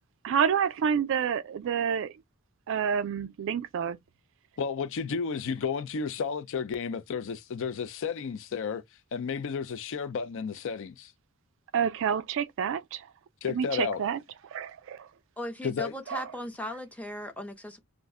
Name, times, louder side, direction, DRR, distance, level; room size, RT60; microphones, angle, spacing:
voice 1, 0.2-2.1 2.7-4.0 11.7-13.0 13.5-14.2 14.5-15.0 16.1-16.2, right 7 dB, 60° right, 0.3 m, -28 dB
voice 2, 4.6-8.8 9.1-11.1 13.4-14.0 15.6-15.9, left 5 dB, 65° left, 0.4 m, -32 dB
voice 3, 15.4-17.8, left 1 dB, 5° left, 0.6 m, -37 dB
2.4 x 2.1 x 3.5 m
head